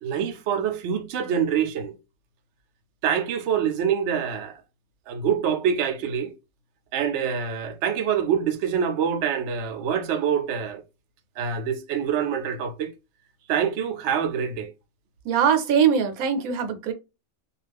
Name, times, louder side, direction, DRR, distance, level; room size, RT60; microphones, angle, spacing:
voice 1, 0.0-2.0 3.0-4.6 5.1-6.3 6.9-10.8 11.4-12.9 13.5-14.7, right 8 dB, 65° right, 0.8 m, -25 dB
voice 2, 15.2-16.9, right 7 dB, 85° right, 1.1 m, -21 dB
2.4 x 2.3 x 3.3 m
omnidirectional pair, 1.5 m